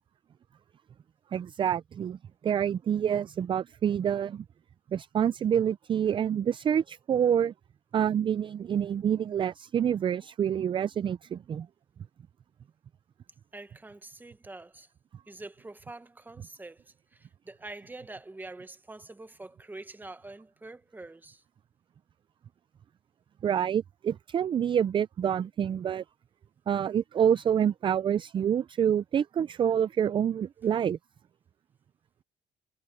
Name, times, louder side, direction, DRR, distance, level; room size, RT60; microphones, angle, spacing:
voice 1, 1.3-4.4 4.9-7.5 7.9-11.7 23.4-26.0 26.7-31.0, right 9 dB, 35° right, 0.4 m, -27 dB
voice 2, 13.5-14.9 15.3-21.4, right 2 dB, 15° right, 1.3 m, -45 dB
cardioid pair, 110°, 15 cm